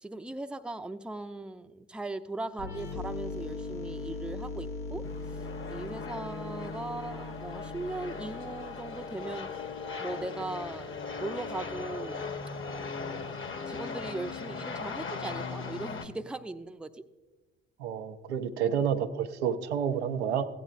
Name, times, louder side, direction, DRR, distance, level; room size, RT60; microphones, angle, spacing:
voice 1, 0.0-5.1 5.7-9.5 10.0-12.2 13.7-17.0, right 2 dB, 5° right, 9 dB, 0.5 m, -39 dB
sound 1, 2.6-10.2, left 3 dB, 70° left, 0.9 m, -40 dB
sound 2, 5.0-16.1, left 4 dB, 40° left, 1.0 m, -38 dB
voice 2, 17.8-20.4, right 8 dB, 90° right, 6 dB, 0.6 m, -29 dB
15.5 x 9.1 x 2.5 m, 1.2 s
hypercardioid pair, 45°, 32 cm